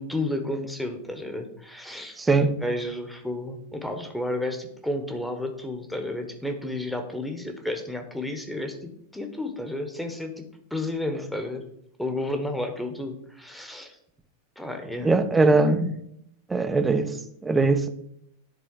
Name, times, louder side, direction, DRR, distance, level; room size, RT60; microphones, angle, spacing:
voice 1, 0.0-2.2 2.6-10.4 10.7-11.6 12.0-14.0 14.6-15.1, left 1 dB, 5° left, 1.2 m, -32 dB
voice 2, 2.2-2.5 15.0-15.9 16.5-17.2 17.4-17.9, right 3 dB, 10° right, 0.7 m, -21 dB
10.5 x 4.1 x 4.7 m
figure-of-eight pair, 90°, 0 cm